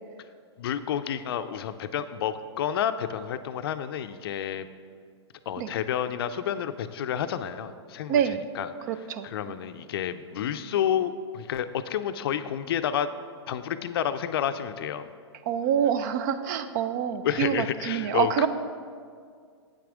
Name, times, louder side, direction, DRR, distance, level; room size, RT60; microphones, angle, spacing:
voice 1, 0.6-4.7 5.5-8.2 8.5-8.9 9.2-13.1 13.5-15.1 17.2-18.5, left 9 dB, 55° left, 11 dB, 0.5 m, -30 dB
voice 2, 8.1-8.4 8.9-9.3 15.5-18.5, right 8 dB, 40° right, 11 dB, 0.5 m, -26 dB
8.4 x 6.0 x 4.9 m, 2.1 s
hypercardioid pair, 130°, 15 cm